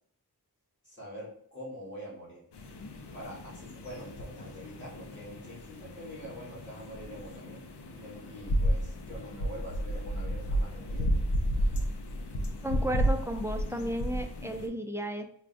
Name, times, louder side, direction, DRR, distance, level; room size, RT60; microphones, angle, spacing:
voice 1, 0.8-2.4 3.1-11.1, equal, 30° left, -8 dB, 1.4 m, -45 dB
sound 1, 2.5-14.7, equal, 90° left, 0.6 m, -33 dB
voice 2, 12.6-15.2, right 1 dB, 10° right, 4 dB, 0.3 m, -33 dB
4.8 x 2.2 x 2.5 m, 0.66 s
wide cardioid pair, 70°, 39 cm